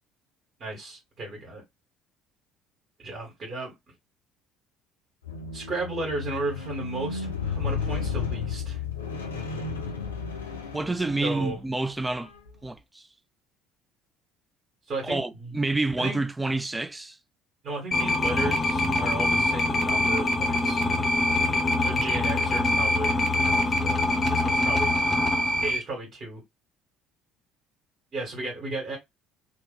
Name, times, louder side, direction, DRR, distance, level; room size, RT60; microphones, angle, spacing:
voice 1, 0.6-1.6 3.0-3.7 5.5-8.8 11.2-11.6 14.9-15.5 16.0-16.2 17.6-20.8 21.8-24.9 25.6-26.4 28.1-29.0, right 2 dB, 45° right, 1.5 m, -34 dB
Squeak, 5.2-11.6 12.4-12.5, left 5 dB, 85° left, 0.5 m, -33 dB
voice 2, 10.7-12.3 12.6-13.1 15.0-17.2, right 2 dB, 15° right, 0.4 m, -28 dB
sound 1, 17.9-25.8, left 2 dB, 30° left, 0.8 m, -24 dB
2.8 x 2.1 x 3.5 m
figure-of-eight pair, 55°, 0 cm